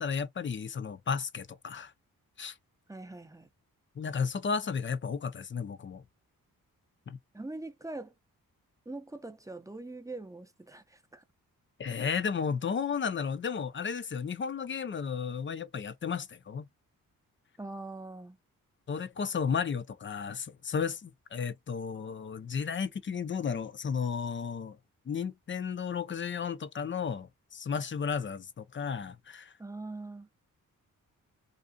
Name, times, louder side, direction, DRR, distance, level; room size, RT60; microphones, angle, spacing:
voice 1, 0.0-1.9 2.4-2.5 4.0-6.0 7.1-7.2 11.8-16.7 18.9-24.8 25.1-29.5, left 6 dB, 35° left, 0.5 m, -33 dB
voice 2, 2.9-3.5 7.3-8.1 8.9-11.2 17.6-18.4 29.6-30.3, right 2 dB, 10° right, 0.6 m, -42 dB
2.5 x 2.4 x 2.5 m
cardioid pair, 55°, 35 cm